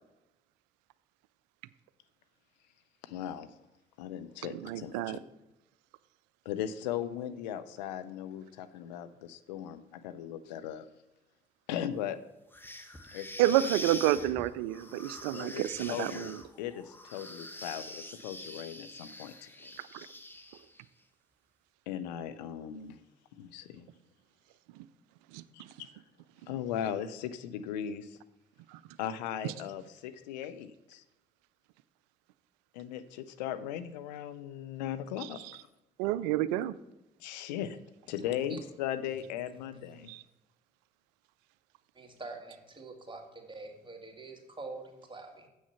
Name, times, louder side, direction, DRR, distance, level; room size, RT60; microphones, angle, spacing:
voice 1, 3.0-3.5 4.0-5.2 6.5-10.9 11.7-12.2 13.1-13.3 15.3-19.7 21.9-23.0 23.3-23.9 25.5-25.9 26.5-28.2 29.0-31.0 32.7-35.4 37.2-37.8 38.1-40.1, left 10 dB, 85° left, 11 dB, 0.5 m, -38 dB
voice 2, 4.5-5.2 13.4-16.4 25.3-25.4 36.0-36.7 40.1-40.2, right 13 dB, 80° right, 17 dB, 0.4 m, -29 dB
sound 1, 12.5-20.8, left 1 dB, 10° left, 1.1 m, -44 dB
voice 3, 38.2-38.6 39.8-39.9 41.9-45.5, right 3 dB, 25° right, 2 dB, 2.2 m, -45 dB
7.9 x 6.3 x 5.7 m, 0.96 s
hypercardioid pair, 50°, 21 cm